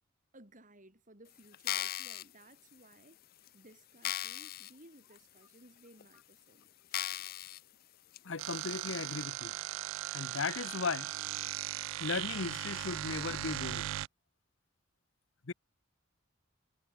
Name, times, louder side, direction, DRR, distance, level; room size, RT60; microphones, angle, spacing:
voice 1, 0.3-7.0, right 1 dB, 40° right, 6.6 m, -59 dB
sound 1, 1.5-2.2 2.9-3.0 3.5-3.6 4.0-4.7 5.2-5.3 6.0-6.1 6.9-7.6 8.1-8.2, left 13 dB, 50° left, 0.5 m, -37 dB
voice 2, 8.2-9.6 10.1-11.1 12.0-13.9 15.4-15.5, left 4 dB, 75° left, 0.9 m, -37 dB
sound 2, 8.4-14.1, right 14 dB, 80° right, 0.3 m, -38 dB
head